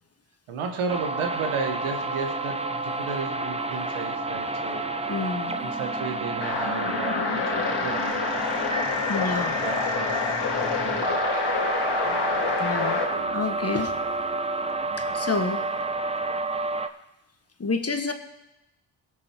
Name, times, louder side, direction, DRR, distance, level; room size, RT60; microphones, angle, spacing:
voice 1, 0.5-5.1 5.6-7.3 7.6-8.4 9.6-11.3 12.0-13.4 14.8-15.1, right 5 dB, 90° right, 5 dB, 1.3 m, -34 dB
sound 1, 0.9-16.9, right 2 dB, 15° right, 0.8 m, -30 dB
voice 2, 5.1-5.6 9.1-9.6 12.6-13.0 13.3-14.0 15.0-15.6 17.6-18.1, left 3 dB, 30° left, 7 dB, 1.3 m, -29 dB
sound 2, 6.4-13.2, left 5 dB, 55° left, 1.9 m, -27 dB
17.5 x 6.2 x 4.4 m, 0.92 s
supercardioid pair, 45°, 48 cm